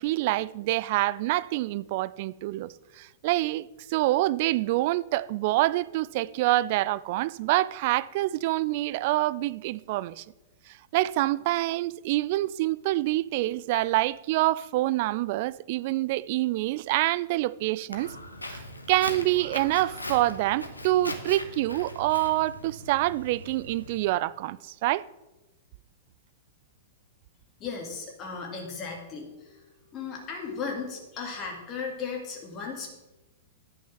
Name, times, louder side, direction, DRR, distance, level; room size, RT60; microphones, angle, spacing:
voice 1, 0.0-10.2 10.9-18.1 18.5-18.6 18.9-25.0, right 17 dB, 45° right, 0.3 m, -26 dB
Walk footsteps, 17.9-24.0, left 1 dB, 85° left, 1.1 m, -40 dB
voice 2, 27.6-32.9, left 5 dB, 30° left, 2.2 m, -36 dB
11.0 x 6.2 x 6.0 m
figure-of-eight pair, 100°, 0 cm